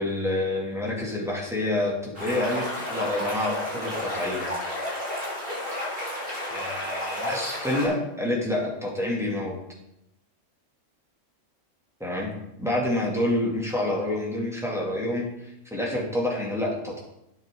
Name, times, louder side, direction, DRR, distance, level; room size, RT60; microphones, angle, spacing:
voice 1, 0.0-4.4 6.5-9.6 12.0-12.3 12.6-17.0, left 1 dB, ahead, -4 dB, 2.6 m, -28 dB
sound 1, 2.1-7.8, left 1 dB, 45° right, 5.1 m, -31 dB
12.0 x 9.7 x 3.9 m, 0.85 s
omnidirectional pair, 1.3 m